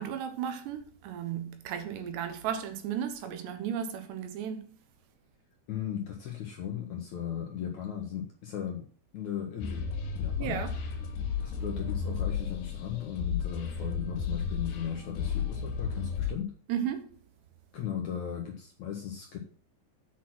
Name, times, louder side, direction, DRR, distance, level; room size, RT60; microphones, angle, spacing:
voice 1, 0.0-4.7 10.4-10.8 16.7-17.0, right 9 dB, 80° right, 3.3 m, -34 dB
voice 2, 5.7-8.8 9.1-9.9 10.1-10.6 11.4-16.5 17.7-19.4, left 9 dB, 65° left, 2.0 m, -37 dB
sound 1, 9.6-16.3, left 6 dB, 80° left, 3.8 m, -33 dB
8.3 x 6.1 x 6.1 m
omnidirectional pair, 4.9 m